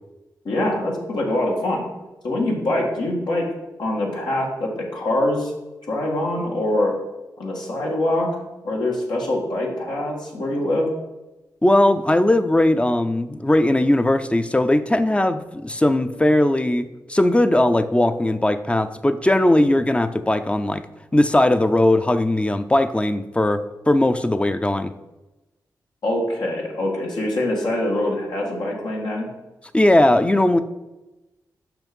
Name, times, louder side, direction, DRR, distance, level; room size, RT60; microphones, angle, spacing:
voice 1, 0.4-1.9 2.2-3.5 3.8-5.5 5.9-6.9 7.4-8.3 8.6-10.9 26.0-29.3, left 1 dB, 80° left, -2 dB, 2.0 m, -24 dB
voice 2, 11.6-20.8 21.1-24.9 29.7-30.6, left 1 dB, 15° left, 10 dB, 0.6 m, -19 dB
6.0 x 5.6 x 5.3 m, 1.0 s
cardioid pair, 55°, 7 cm